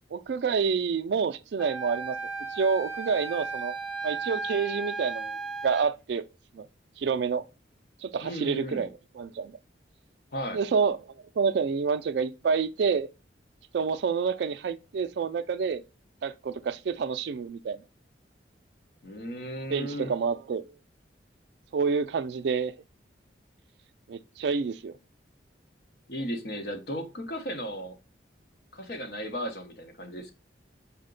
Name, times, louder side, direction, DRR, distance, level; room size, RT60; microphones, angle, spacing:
voice 1, 0.1-2.2 2.5-3.8 4.0-5.4 5.6-6.2 6.5-6.7 7.0-7.4 8.0-9.5 10.5-13.1 13.7-15.8 16.2-17.8 19.7-20.8 21.7-22.7 24.1-25.0, right 5 dB, 65° right, 0.3 m, -28 dB
Wind instrument woodwind instrument, 1.6-5.9, right 4 dB, ahead, 0.6 m, -35 dB
voice 2, 8.2-8.9 10.3-10.6 19.0-20.1 26.1-28.0 28.7-30.3, equal, 55° left, 0.8 m, -35 dB
5.6 x 2.1 x 3.7 m
head